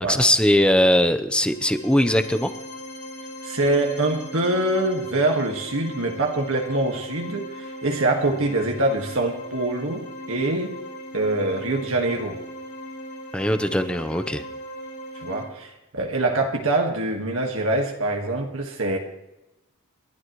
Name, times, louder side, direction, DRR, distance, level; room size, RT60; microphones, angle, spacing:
voice 1, 0.1-2.5 13.3-14.4, left 1 dB, 5° left, 10 dB, 0.8 m, -20 dB
sound 1, 1.4-15.4, equal, 45° left, 6.0 m, -38 dB
voice 2, 3.4-10.7 11.1-12.4 15.2-19.0, right 2 dB, 75° right, 1 dB, 1.8 m, -24 dB
30.0 x 12.0 x 3.1 m, 0.97 s
head